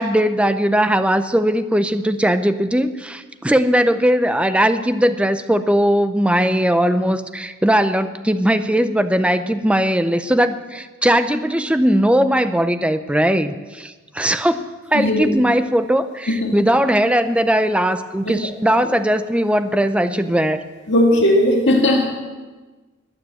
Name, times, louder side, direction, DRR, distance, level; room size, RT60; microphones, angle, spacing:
voice 1, 0.0-14.6 14.9-20.6, equal, 5° right, 10 dB, 0.6 m, -19 dB
voice 2, 14.9-15.3 16.3-16.6 18.3-18.4 18.7-18.8 20.9-22.0, left 1 dB, 55° left, 0 dB, 2.2 m, -17 dB
21.0 x 7.3 x 7.7 m, 1.3 s
head